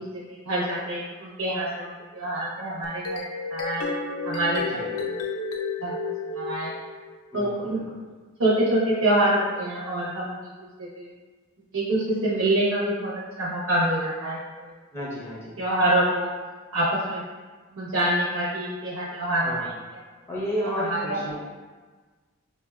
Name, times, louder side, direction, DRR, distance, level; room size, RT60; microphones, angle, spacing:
voice 1, 0.1-3.2 3.5-3.8 4.2-5.0 5.8-6.0 6.3-6.7 7.3-7.8 8.4-10.3 11.0-11.1 11.7-13.1 13.4-14.4 15.6-16.3 16.7-17.2 17.7-19.5 20.9-21.2, right 1 dB, 75° right, -7 dB, 0.8 m, -25 dB
sound 1, 2.8-7.2, left 4 dB, 75° left, 0.4 m, -31 dB
voice 2, 7.3-8.0 14.9-15.5 19.4-19.7 20.3-21.4, equal, 10° left, -5 dB, 0.5 m, -32 dB
5.3 x 2.1 x 2.3 m, 1.4 s
head